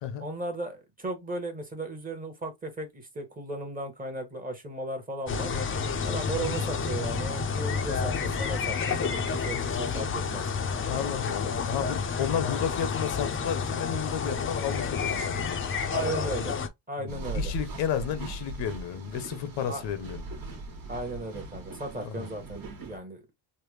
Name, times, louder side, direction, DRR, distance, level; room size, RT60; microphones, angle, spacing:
voice 1, 0.2-5.5 6.0-10.4 15.9-16.6 16.9-17.5 19.7-19.8 20.9-23.2, right 1 dB, 20° right, 1.0 m, -36 dB
sound 1, 5.3-16.7, left 5 dB, 30° left, 0.5 m, -30 dB
voice 2, 10.9-15.6 17.0-20.2 22.0-22.3, left 9 dB, 65° left, 0.7 m, -32 dB
sound 2, 17.1-23.0, right 2 dB, 45° right, 1.3 m, -39 dB
3.3 x 2.2 x 3.1 m
cardioid pair, 125°, 47 cm